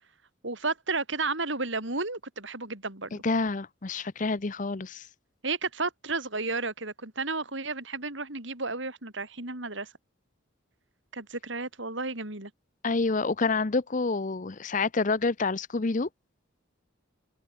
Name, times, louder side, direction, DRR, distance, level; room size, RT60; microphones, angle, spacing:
voice 1, 0.4-3.2 5.4-9.9 11.1-12.5, right 3 dB, 65° right, 4.9 m, -32 dB
voice 2, 3.2-5.0 12.8-16.1, left 3 dB, 40° left, 0.7 m, -28 dB
head